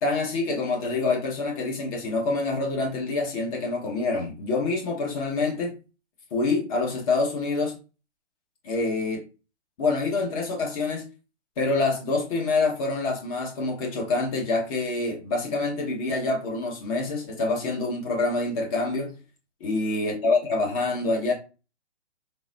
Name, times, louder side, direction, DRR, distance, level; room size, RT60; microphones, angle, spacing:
voice 1, 0.0-5.7 6.3-7.7 8.6-9.2 9.8-11.0 11.6-19.1 19.6-21.3, left 3 dB, 30° left, 1.1 m, -26 dB
4.0 x 2.0 x 3.8 m
hypercardioid pair, 150°, 35 cm